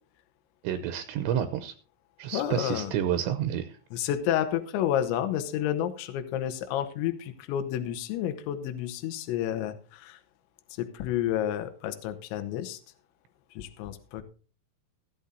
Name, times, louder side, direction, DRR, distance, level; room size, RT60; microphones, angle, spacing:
voice 1, 0.6-1.7 2.2-3.7, right 10 dB, 80° right, 8 dB, 2.8 m, -29 dB
voice 2, 2.3-3.0 3.9-10.2 10.7-12.8 13.5-14.2, left 11 dB, 80° left, 9 dB, 3.1 m, -30 dB
15.0 x 12.0 x 2.7 m, 0.38 s
omnidirectional pair, 5.5 m